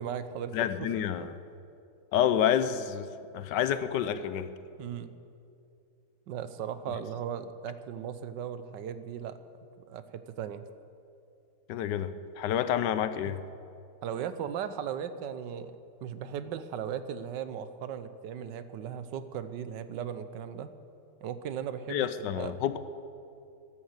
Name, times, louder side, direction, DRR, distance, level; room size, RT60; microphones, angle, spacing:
voice 1, 0.0-0.7 1.2-1.3 4.8-5.1 6.3-9.4 9.9-10.6 13.3-13.4 14.0-20.7 21.2-22.5, right 8 dB, 80° right, 12 dB, 1.4 m, -37 dB
voice 2, 0.5-1.3 2.1-3.1 3.3-4.5 11.7-13.4 21.9-22.8, left 9 dB, 80° left, 12 dB, 1.3 m, -28 dB
13.0 x 11.0 x 8.1 m, 2.6 s
omnidirectional pair, 1.9 m